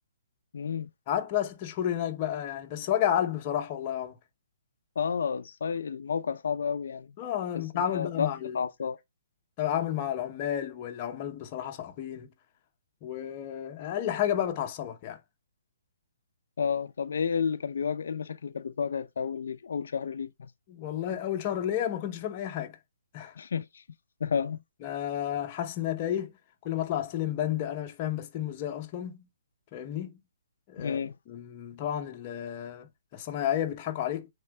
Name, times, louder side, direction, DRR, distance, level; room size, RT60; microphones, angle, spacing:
voice 1, 0.5-0.9 5.0-7.2 7.5-7.6 7.9-8.3 8.5-9.0 16.6-20.5 23.4-23.8 24.2-24.6 30.8-31.2, left 6 dB, 60° left, 0.6 m, -31 dB
voice 2, 1.1-4.1 7.2-8.6 9.6-12.3 13.0-15.2 20.7-22.8 23.1-23.4 24.8-26.3 26.6-29.3 29.7-30.2 30.7-31.0 31.3-34.3, left 10 dB, 20° left, 0.8 m, -31 dB
8.6 x 3.7 x 3.4 m
hypercardioid pair, 180°, 0 cm